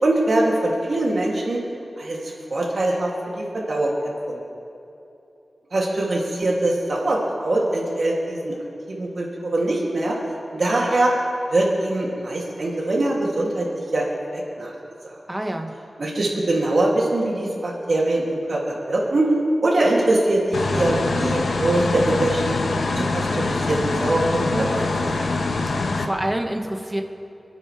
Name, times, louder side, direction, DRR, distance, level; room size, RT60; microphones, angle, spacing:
voice 1, 0.0-1.6 2.0-4.4 5.7-8.6 8.9-10.2 10.5-11.1 11.5-14.1 14.3-14.7 15.0-15.2 16.0-19.3 19.6-22.6 23.0-25.3, right 1 dB, 65° right, -4 dB, 2.7 m, -23 dB
voice 2, 15.3-15.7 25.7-27.0, right 1 dB, 15° right, 3 dB, 1.5 m, -27 dB
sound 1, 20.5-26.1, left 3 dB, 85° left, 1.2 m, -24 dB
29.5 x 9.9 x 3.4 m, 2.8 s
wide cardioid pair, 65°, 0 cm